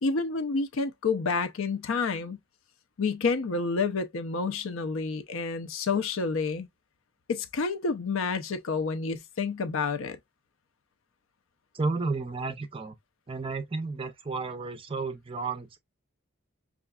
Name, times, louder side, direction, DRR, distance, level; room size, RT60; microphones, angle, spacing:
voice 1, 0.0-2.4 3.0-6.7 7.3-10.2, left 4 dB, 70° left, 0.5 m, -29 dB
voice 2, 11.7-13.0 13.3-15.8, right 3 dB, 25° right, 0.4 m, -32 dB
5.6 x 2.4 x 2.3 m
head